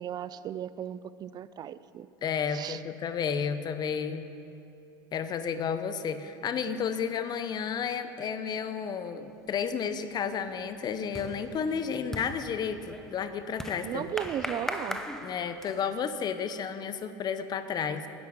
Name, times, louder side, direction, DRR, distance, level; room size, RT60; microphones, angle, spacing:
voice 1, 0.0-2.1 2.5-2.8 13.8-15.0, right 10 dB, 35° right, 16 dB, 0.3 m, -36 dB
voice 2, 2.2-4.3 5.1-14.1 15.2-18.1, left 7 dB, 35° left, 11 dB, 0.8 m, -32 dB
sound 1, 9.7-9.9 10.2-16.0, left 1 dB, 5° left, 0.9 m, -40 dB
10.5 x 9.5 x 7.3 m, 2.7 s
hypercardioid pair, 95°, 11 cm